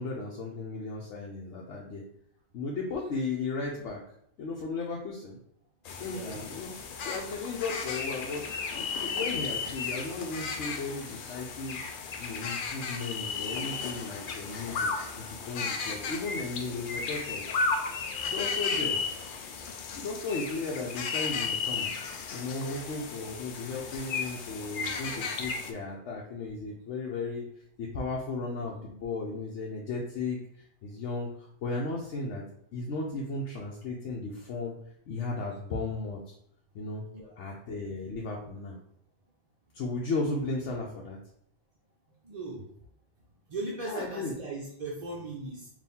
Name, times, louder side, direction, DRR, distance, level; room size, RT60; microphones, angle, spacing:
voice 1, 0.0-2.0 2.5-4.0 4.4-5.4 6.0-6.7 7.0-8.4 8.7-11.8 12.2-14.9 15.2-17.4 18.1-19.0 19.9-21.9 22.3-27.4 27.8-30.4 30.8-32.4 32.7-34.7 35.1-36.3 36.7-37.0 37.4-38.8 39.7-41.2 43.9-44.3, left 3 dB, 90° left, -3 dB, 1.0 m, -35 dB
sound 1, 5.9-25.7, left 5 dB, 60° left, 0.6 m, -34 dB
voice 2, 6.0-6.5 37.1-37.3 42.2-42.7 43.5-45.7, right 2 dB, 40° right, -3 dB, 0.6 m, -38 dB
4.2 x 2.6 x 3.5 m, 0.68 s
omnidirectional pair, 1.2 m